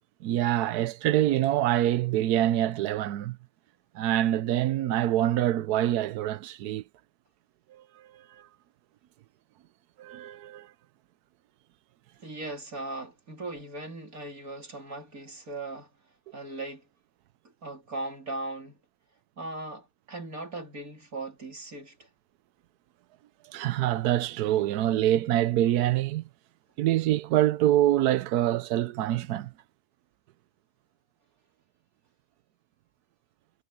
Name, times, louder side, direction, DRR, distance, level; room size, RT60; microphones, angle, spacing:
voice 1, 0.2-3.4 3.9-6.8 7.7-8.2 10.0-10.7 23.5-26.3 26.8-29.5, right 13 dB, 75° right, 1.2 m, -25 dB
voice 2, 12.2-15.9 16.3-16.9 17.6-18.8 19.4-22.1, right 2 dB, 60° right, 4.2 m, -38 dB
omnidirectional pair, 1.7 m